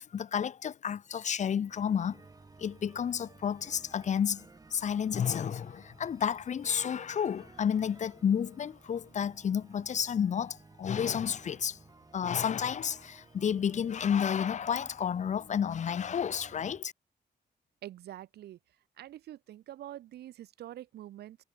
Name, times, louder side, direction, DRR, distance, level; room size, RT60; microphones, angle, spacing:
voice 1, 0.0-2.2 2.6-4.5 4.7-11.8 12.1-16.9, left 8 dB, 45° left, 0.8 m, -31 dB
sound 1, 1.7-16.8, right 3 dB, 20° right, 1.8 m, -56 dB
voice 2, 17.8-18.6 19.0-21.4, right 13 dB, 85° right, 0.5 m, -45 dB
wide cardioid pair, 150°, 17 cm